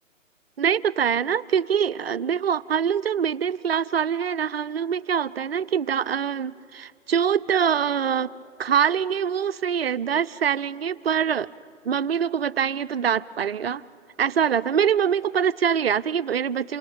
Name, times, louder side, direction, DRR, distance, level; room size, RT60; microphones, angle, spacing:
voice 1, 0.6-8.3 8.6-11.5 11.8-13.8 14.2-16.8, right 8 dB, 50° right, 14 dB, 0.6 m, -24 dB
28.0 x 25.5 x 8.5 m, 2.4 s
figure-of-eight pair, 135°, 40 cm